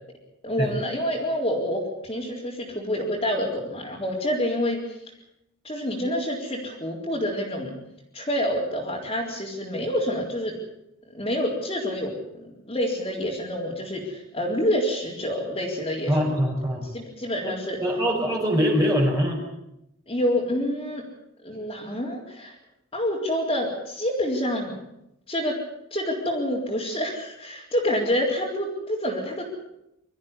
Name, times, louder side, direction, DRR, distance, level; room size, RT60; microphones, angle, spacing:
voice 1, 0.4-5.0 5.6-7.7 8.1-10.6 11.1-16.4 16.9-17.8 20.1-21.0 21.4-22.5 22.9-24.7 25.3-25.6 25.9-29.4, equal, 25° left, -6 dB, 3.9 m, -27 dB
voice 2, 16.1-16.9 17.4-17.5 17.8-19.4, equal, 15° right, -2 dB, 5.4 m, -23 dB
24.5 x 14.0 x 9.8 m, 0.83 s
head